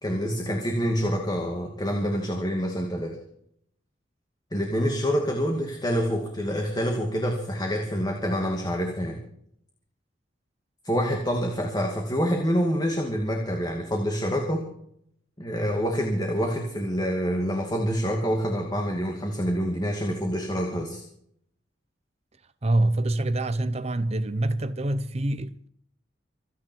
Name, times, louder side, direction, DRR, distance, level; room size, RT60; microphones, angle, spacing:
voice 1, 0.0-3.2 4.5-9.2 10.8-14.7 15.4-21.0, equal, 25° left, 2.4 m, -27 dB
voice 2, 22.6-25.7, right 1 dB, 35° right, 0.8 m, -25 dB
26.5 x 9.7 x 4.6 m
head